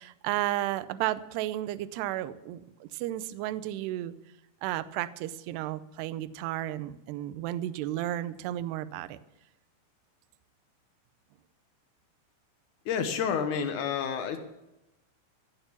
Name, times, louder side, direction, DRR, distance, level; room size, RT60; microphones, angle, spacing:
voice 1, 0.0-4.1 4.6-9.2, right 14 dB, 80° right, 14 dB, 2.5 m, -33 dB
voice 2, 12.9-14.4, left 7 dB, 75° left, 7 dB, 1.8 m, -29 dB
16.0 x 9.0 x 7.2 m, 0.92 s
omnidirectional pair, 5.3 m